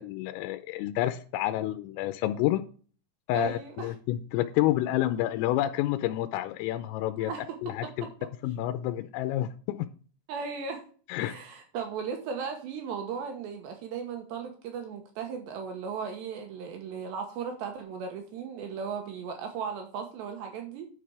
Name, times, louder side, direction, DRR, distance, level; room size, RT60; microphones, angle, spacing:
voice 1, 0.0-2.6 3.3-7.3 7.6-8.1 8.4-9.9 11.1-11.4, left 14 dB, 85° left, 9 dB, 3.3 m, -29 dB
voice 2, 3.3-3.9 7.2-7.4 10.3-10.8 11.2-20.9, right 6 dB, 70° right, 4 dB, 3.0 m, -36 dB
10.5 x 6.7 x 4.7 m, 0.41 s
omnidirectional pair, 5.9 m